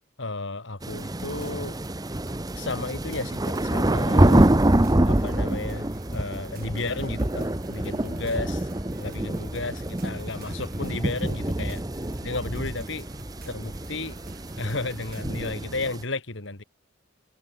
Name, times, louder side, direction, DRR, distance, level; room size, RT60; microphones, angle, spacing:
voice 1, 0.2-1.8 2.5-4.5 5.0-8.7 9.0-11.8 12.2-13.1 13.5-14.2 14.6-16.6, left 2 dB, 60° left, 2.0 m, -33 dB
sound 1, 0.8-16.0, right 1 dB, 20° right, 0.9 m, -26 dB
sound 2, 0.9-15.5, right 1 dB, 45° right, 5.7 m, -46 dB
sound 3, 7.2-8.0 8.3-9.1, equal, 5° left, 6.9 m, -39 dB
head